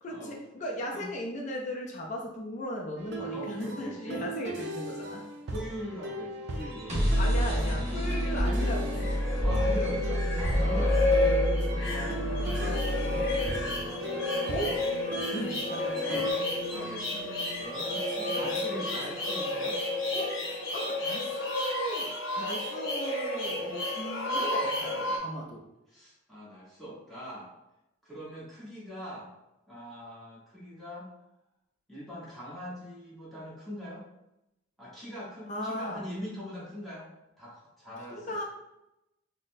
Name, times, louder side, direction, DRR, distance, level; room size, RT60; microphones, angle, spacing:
voice 1, 0.0-5.2 7.2-9.2 10.5-10.9 14.5-14.8 15.3-16.3 18.1-19.1 20.1-25.6 35.5-36.0 38.1-38.4, equal, 35° left, 0 dB, 0.4 m, -37 dB
sound 1, 3.0-16.3, right 2 dB, 55° right, 0.4 m, -39 dB
voice 2, 3.3-4.2 5.5-7.1 7.4-7.7 9.4-11.0 11.8-13.6 16.0-16.3 16.7-18.0 18.3-19.8 25.9-27.5 28.0-29.3 29.7-31.1 31.9-34.0 34.8-37.1 37.4-38.4, equal, ahead, -9 dB, 1.0 m, -42 dB
sound 2, 6.6-20.5, equal, 35° right, 0.9 m, -31 dB
sound 3, 8.2-25.2, left 2 dB, 70° left, 0.8 m, -31 dB
4.0 x 2.0 x 2.5 m, 0.88 s
head